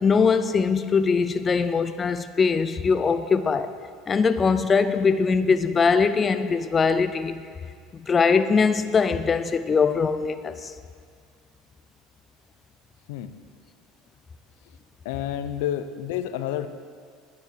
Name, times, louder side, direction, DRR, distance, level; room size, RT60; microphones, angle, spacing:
voice 1, 0.0-3.7 4.1-7.4 8.1-10.7, left 5 dB, 20° left, 0.4 m, -21 dB
voice 2, 15.0-16.7, left 11 dB, 85° left, 0.7 m, -29 dB
10.0 x 9.5 x 8.3 m
cardioid pair, 145°, 0 cm